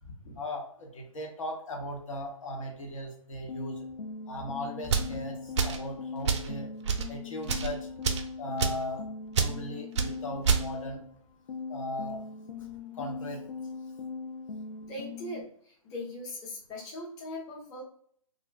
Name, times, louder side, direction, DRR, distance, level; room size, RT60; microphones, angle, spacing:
voice 1, 0.2-3.9 4.3-6.7 7.1-7.9 8.4-9.0 9.3-11.0 11.7-12.2 12.6-12.7 12.9-13.4, left 1 dB, 65° left, 1 dB, 0.9 m, -38 dB
sound 1, 3.5-11.1 11.5-15.4, left 4 dB, 85° left, 0.5 m, -40 dB
sound 2, 4.8-5.1 5.6-5.8 6.3-6.5 6.8-7.1 7.4-7.7 8.0-8.3 8.6-8.8 9.3-9.5 10.0-10.1 10.4-10.7, right 5 dB, 55° right, 0.5 m, -27 dB
voice 2, 14.8-17.8, left 1 dB, 20° left, -3 dB, 0.6 m, -40 dB
2.5 x 2.2 x 3.2 m, 0.62 s
hypercardioid pair, 135°, 18 cm